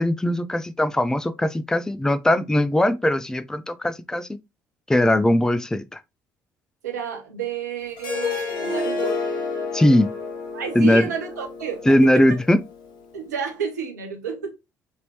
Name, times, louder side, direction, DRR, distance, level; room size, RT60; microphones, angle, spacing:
voice 1, 0.0-4.3 4.9-6.0 9.7-10.1 10.8-11.1 11.9-12.6, left 1 dB, 5° left, 0.3 m, -20 dB
voice 2, 6.8-9.2 10.5-12.0 13.1-14.6, right 7 dB, 80° right, 0.6 m, -30 dB
Harp, 8.0-13.1, left 4 dB, 55° left, 0.9 m, -30 dB
3.0 x 2.7 x 2.7 m
figure-of-eight pair, 50°, 9 cm